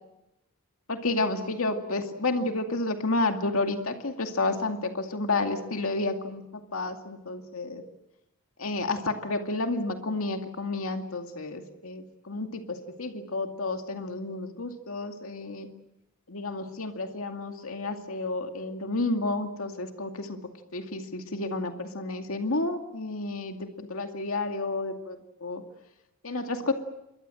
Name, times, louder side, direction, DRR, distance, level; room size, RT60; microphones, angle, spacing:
voice 1, 0.9-7.8 8.6-15.7 16.3-25.6 26.2-26.7, left 2 dB, 80° left, 5 dB, 2.3 m, -31 dB
28.0 x 23.0 x 7.7 m, 0.89 s
head